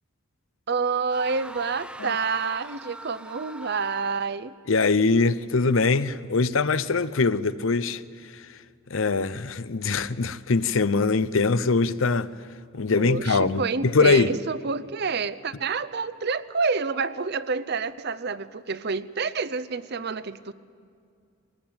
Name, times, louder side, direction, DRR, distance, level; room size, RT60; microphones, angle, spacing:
voice 1, 0.7-4.5 13.0-20.5, right 4 dB, 50° right, 16 dB, 0.7 m, -28 dB
sound 1, 1.1-4.4, right 1 dB, 5° right, 0.7 m, -42 dB
voice 2, 4.7-8.0 8.3-8.5 8.9-12.3 12.7-14.4, left 4 dB, 70° left, 16 dB, 0.7 m, -22 dB
22.0 x 19.0 x 8.8 m, 2.3 s
head